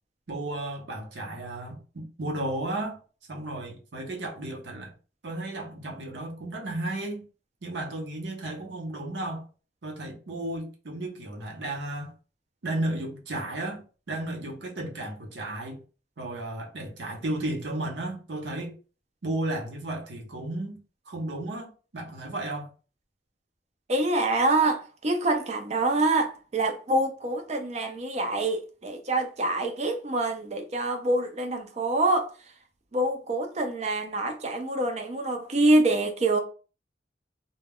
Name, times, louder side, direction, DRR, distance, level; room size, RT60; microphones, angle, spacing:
voice 1, 0.3-3.0 3.3-4.9 5.2-7.2 7.6-9.4 9.8-12.1 12.6-13.8 14.1-15.8 16.2-18.7 19.2-20.8 21.1-22.7, right 1 dB, 70° right, 0.8 m, -33 dB
voice 2, 23.9-32.3 32.9-36.4, right 2 dB, 35° right, 0.5 m, -26 dB
2.2 x 2.1 x 3.5 m
head